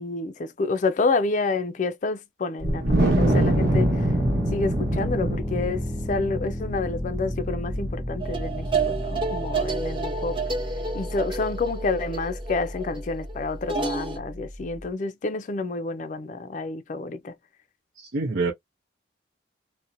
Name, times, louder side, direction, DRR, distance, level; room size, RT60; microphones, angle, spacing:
voice 1, 0.0-4.1 4.5-10.4 10.9-17.4, left 3 dB, 40° left, 0.3 m, -29 dB
Wind, 2.6-9.1, right 1 dB, 55° right, 1.1 m, -25 dB
sound 1, 3.2-14.9, left 1 dB, 10° right, 1.0 m, -33 dB
sound 2, 8.2-14.2, right 4 dB, 25° right, 0.7 m, -30 dB
voice 2, 18.0-18.5, right 3 dB, 75° right, 0.7 m, -26 dB
2.8 x 2.1 x 2.5 m
head